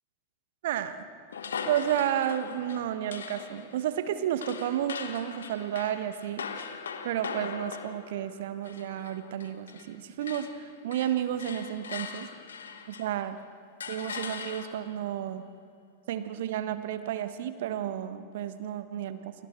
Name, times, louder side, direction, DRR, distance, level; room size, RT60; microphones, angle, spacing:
voice 1, 0.6-1.0 1.7-6.5 7.0-12.3 12.9-13.4 13.9-15.5 16.1-19.3, right 10 dB, 55° right, 11 dB, 1.4 m, -32 dB
sound 1, 1.3-10.0 10.2-13.3 13.8-15.0, left 6 dB, 65° left, 1.4 m, -41 dB
29.5 x 25.5 x 4.6 m, 2.3 s
figure-of-eight pair, 90°, 0 cm